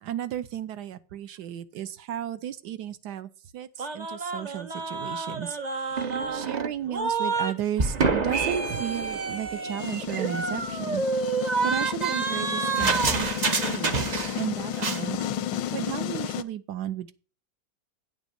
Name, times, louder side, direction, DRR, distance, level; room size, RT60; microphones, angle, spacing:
voice 1, 0.0-11.0 11.6-14.1 14.3-15.3 15.5-17.1, right 10 dB, 70° right, 12 dB, 1.1 m, -34 dB
sound 1, 3.8-7.5 7.8-14.5 14.7-15.0, right 4 dB, 45° right, 0.5 m, -28 dB
sound 2, 9.8-16.4, left 10 dB, 90° left, 1.3 m, -33 dB
9.4 x 6.1 x 5.1 m, 0.36 s
omnidirectional pair, 2.0 m